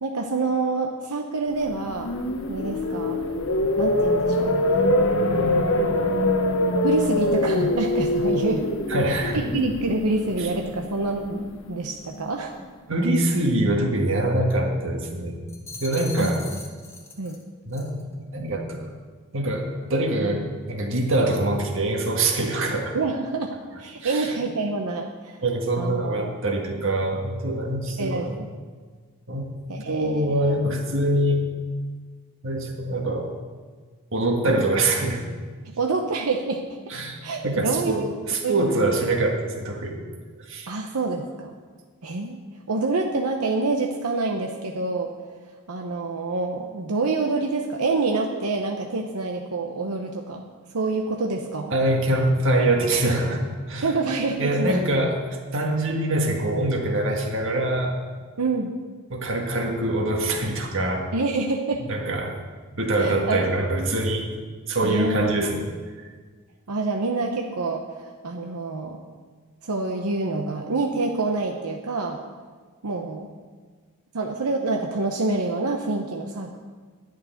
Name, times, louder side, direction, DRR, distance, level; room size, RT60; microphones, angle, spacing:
voice 1, 0.0-2.1 2.5-3.2 3.8-4.5 5.3-6.2 6.8-8.7 9.1-12.5 16.2-16.5 17.2-17.4 22.9-23.5 23.8-25.4 25.8-26.3 28.0-28.5 29.7-30.3 35.6-36.6 37.2-37.9 38.4-38.7 40.7-41.6 42.0-42.4 42.7-45.1 45.7-50.4 50.7-51.7 53.8-54.8 58.4-58.7 61.1-61.8 63.0-63.5 64.8-65.2 66.7-69.0 69.6-72.2 72.8-73.3 74.1-76.6, right 3 dB, 90° right, 3 dB, 0.9 m, -27 dB
sound 1, 1.7-11.8, left 1 dB, 60° left, 1.0 m, -24 dB
voice 2, 8.9-9.4 10.4-10.5 12.9-15.5 15.8-16.5 17.7-18.9 19.3-23.0 24.0-24.4 25.4-28.4 29.3-29.5 29.9-31.5 32.4-33.3 34.1-35.3 36.9-37.2 37.4-40.0 40.4-40.7 51.7-53.9 54.4-55.2 55.5-58.0 59.1-61.1 61.8-62.4 62.8-64.3 64.7-65.7, right 1 dB, 60° right, 2 dB, 1.8 m, -24 dB
sound 2, 15.5-17.4 17.7-18.0, left 3 dB, 10° left, 1.2 m, -40 dB
11.0 x 6.7 x 9.3 m, 1.5 s
head